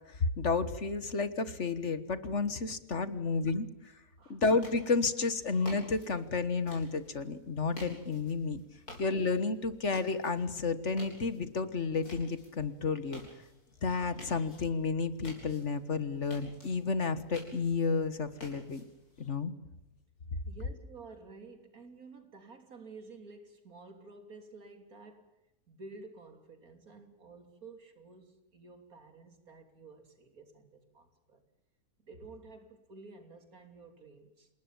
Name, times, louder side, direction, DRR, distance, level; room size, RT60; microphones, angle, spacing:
voice 1, 0.1-3.9 4.3-8.6 9.0-13.2 13.8-18.8 19.2-19.5, left 4 dB, 50° left, 1.7 m, -31 dB
sound 1, 4.5-19.3, left 1 dB, 80° left, 8.7 m, -53 dB
voice 2, 20.5-25.4 25.7-31.4 32.0-34.5, right 3 dB, 70° right, 3.7 m, -52 dB
28.5 x 19.0 x 7.3 m
omnidirectional pair, 1.6 m